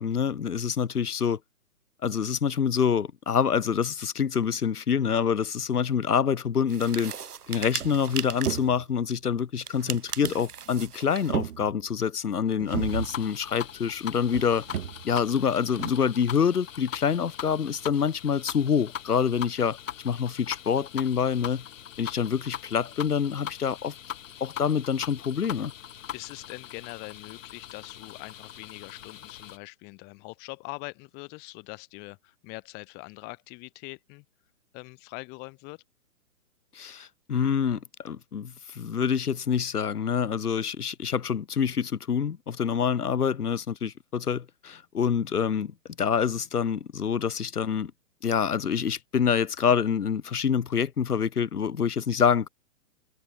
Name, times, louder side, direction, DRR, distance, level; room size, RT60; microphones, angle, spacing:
voice 1, 0.0-1.4 2.0-7.1 7.5-14.6 15.0-19.8 20.0-21.6 22.0-23.9 24.4-25.7 36.7-47.9 48.2-52.5, left 7 dB, 80° left, 2.7 m, -26 dB
sound 1, 6.7-8.7 9.6-11.4, right 7 dB, 90° right, 1.7 m, -38 dB
sound 2, 7.2-7.3 7.6-9.0 10.1-10.9 11.1-12.0 12.6-13.3 14.3-15.2 15.8-15.9, right 9 dB, 70° right, 1.5 m, -34 dB
sound 3, 12.9-29.6, left 10 dB, 60° left, 1.9 m, -41 dB
voice 2, 26.1-34.2 34.7-35.8, left 29 dB, 20° left, 1.8 m, -42 dB
hypercardioid pair, 150°, 45 cm